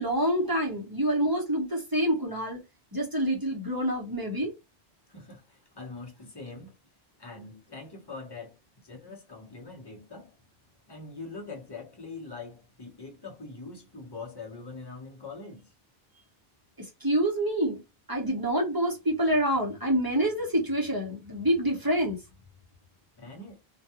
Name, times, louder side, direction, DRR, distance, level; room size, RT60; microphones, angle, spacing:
voice 1, 0.0-2.6 2.9-4.5 17.0-17.8 18.1-22.2, right 1 dB, 20° right, 0.8 m, -27 dB
voice 2, 5.1-6.7 7.2-8.5 8.8-10.3 10.9-15.7 23.2-23.6, left 3 dB, 25° left, 0.8 m, -43 dB
2.4 x 2.2 x 2.8 m
omnidirectional pair, 1.1 m